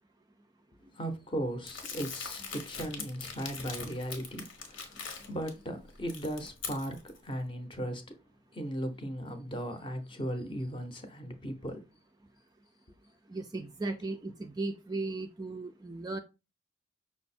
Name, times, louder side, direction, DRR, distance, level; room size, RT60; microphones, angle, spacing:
voice 1, 0.9-8.1 8.5-11.8, equal, 25° left, 0.6 m, -37 dB
Crumpling crinkling, 1.7-5.5 5.9-7.2, left 5 dB, 80° left, 1.1 m, -42 dB
voice 2, 13.3-16.2, right 3 dB, 20° right, 0.3 m, -36 dB
5.8 x 2.0 x 4.2 m
head